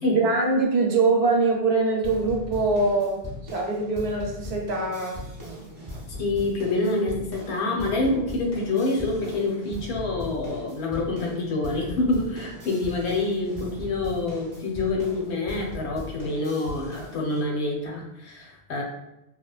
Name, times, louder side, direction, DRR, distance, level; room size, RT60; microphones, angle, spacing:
voice 1, 0.0-3.2 3.5-5.2, right 3 dB, 75° right, 0 dB, 0.8 m, -23 dB
sound 1, 2.0-17.4, left 1 dB, 25° right, 0.5 m, -39 dB
voice 2, 6.1-18.8, left 2 dB, 85° left, 0 dB, 0.9 m, -27 dB
2.8 x 2.0 x 2.3 m, 0.89 s
omnidirectional pair, 1.1 m